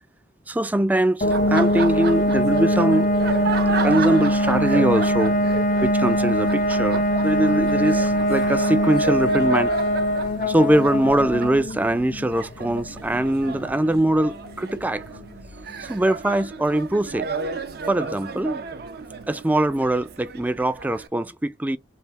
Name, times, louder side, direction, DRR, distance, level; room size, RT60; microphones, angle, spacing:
voice 1, 0.5-3.1 3.8-5.4 5.8-9.7 10.5-15.0 15.8-17.3 17.9-18.6 19.3-21.8, right 1 dB, 10° right, 0.3 m, -22 dB
sound 1, 1.2-15.8, equal, 45° left, 0.6 m, -23 dB
Laughter, 1.2-21.1, right 5 dB, 60° right, 0.7 m, -33 dB
3.3 x 2.6 x 4.2 m
head